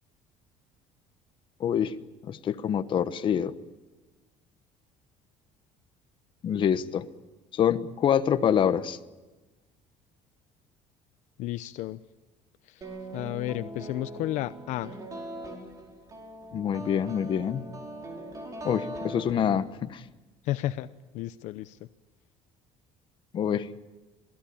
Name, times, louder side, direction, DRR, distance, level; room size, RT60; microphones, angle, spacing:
voice 1, 1.6-1.9 2.2-3.5 6.4-7.1 7.5-9.0 16.5-17.6 18.6-20.0 23.3-23.7, left 9 dB, 40° left, 10 dB, 1.2 m, -26 dB
voice 2, 11.4-12.0 13.1-15.0 20.5-20.9 21.1-21.8, left 14 dB, 70° left, 13 dB, 0.8 m, -32 dB
sound 1, 12.8-19.9, right 1 dB, 25° right, 5.3 m, -41 dB
27.0 x 18.0 x 8.6 m, 1.2 s
cardioid pair, 145°, 13 cm